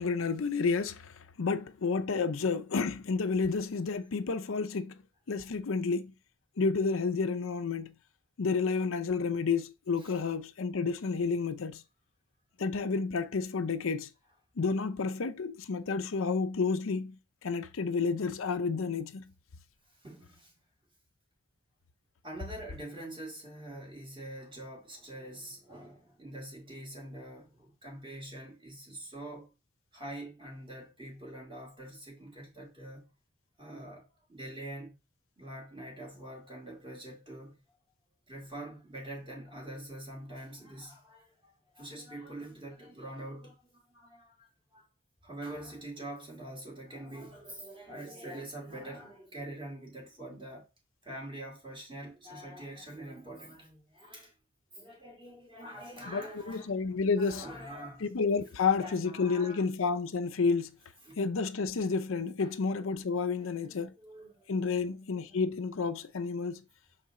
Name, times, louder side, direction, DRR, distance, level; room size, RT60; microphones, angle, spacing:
voice 1, 0.0-5.0 5.3-6.1 6.6-7.9 8.4-11.8 12.6-14.1 14.6-17.2 17.4-19.2 56.1-57.5 58.0-60.8 61.2-63.9 64.5-66.6, left 4 dB, 80° left, 0.6 m, -30 dB
voice 2, 20.0-20.5 22.2-29.5 29.9-33.1 33.6-35.0 35.4-37.5 38.3-44.9 45.2-50.6 51.0-54.3 54.7-56.9 57.2-58.0 58.6-59.6 61.0-61.2 62.4-62.5 63.3-64.9, right 1 dB, 25° right, 2.4 m, -45 dB
6.4 x 4.2 x 3.7 m
head